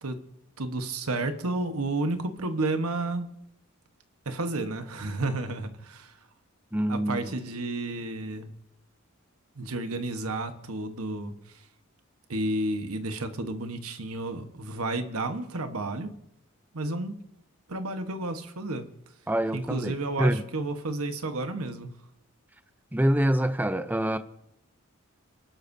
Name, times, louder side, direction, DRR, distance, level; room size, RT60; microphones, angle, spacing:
voice 1, 0.6-3.3 4.2-6.1 6.9-8.5 9.6-11.3 12.3-16.1 16.7-17.1 17.7-18.9 19.5-21.9, right 2 dB, 85° right, 1.3 m, -31 dB
voice 2, 6.7-7.3 19.3-20.4 22.9-24.2, equal, 10° right, 0.6 m, -26 dB
29.5 x 11.5 x 2.7 m
head